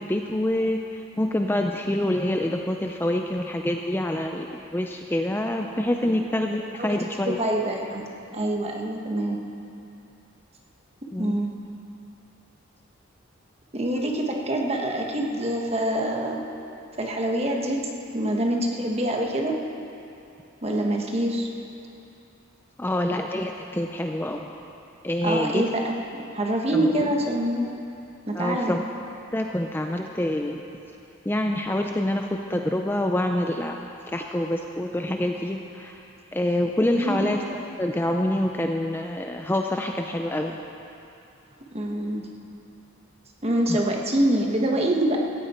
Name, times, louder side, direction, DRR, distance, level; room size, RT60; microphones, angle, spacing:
voice 1, 0.0-7.4 11.1-11.4 22.8-24.5 25.0-25.6 26.7-26.9 28.4-28.8 29.3-30.6 31.3-33.8 34.1-36.0 36.3-40.6 43.7-43.8, left 1 dB, 10° left, 3 dB, 0.5 m, -26 dB
voice 2, 7.2-8.1 8.3-9.4 11.2-11.5 13.7-16.4 17.0-17.8 18.1-19.5 20.6-21.5 25.2-25.9 26.3-27.7 28.3-28.8 36.9-37.3 41.7-42.2 43.4-45.2, right 1 dB, 30° right, 0 dB, 1.4 m, -25 dB
17.0 x 14.5 x 4.4 m, 2.7 s
head